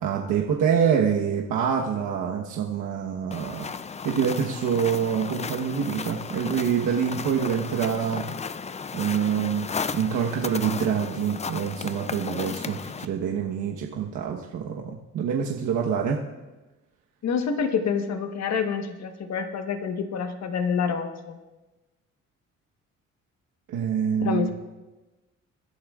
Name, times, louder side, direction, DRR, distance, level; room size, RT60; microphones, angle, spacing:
voice 1, 0.0-3.7 4.0-8.2 8.9-9.7 9.9-16.2 23.7-24.5, right 7 dB, 80° right, -1 dB, 1.2 m, -26 dB
sound 1, 3.3-13.1, left 5 dB, 20° left, 0.4 m, -35 dB
voice 2, 17.2-21.4 24.2-24.5, left 6 dB, 60° left, 6 dB, 1.3 m, -27 dB
24.0 x 11.5 x 2.4 m, 1.1 s
cardioid pair, 90°, 30 cm